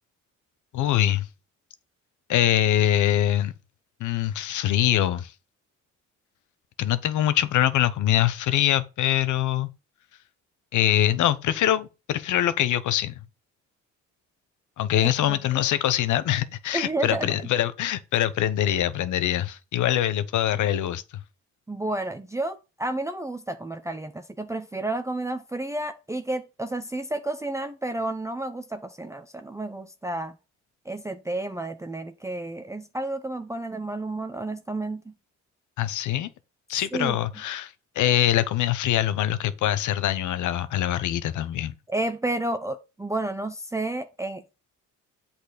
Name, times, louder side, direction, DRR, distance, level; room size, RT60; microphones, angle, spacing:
voice 1, 0.7-1.3 2.3-3.5 4.0-5.3 6.8-9.7 10.7-13.1 14.8-21.0 35.8-36.3 36.7-41.7, left 12 dB, 75° left, 0.8 m, -23 dB
voice 2, 15.0-15.6 16.7-17.3 21.7-30.4 30.9-35.1 36.9-37.2 41.9-44.4, right 2 dB, 10° right, 0.6 m, -31 dB
8.1 x 4.3 x 5.0 m
cardioid pair, 90°, 30 cm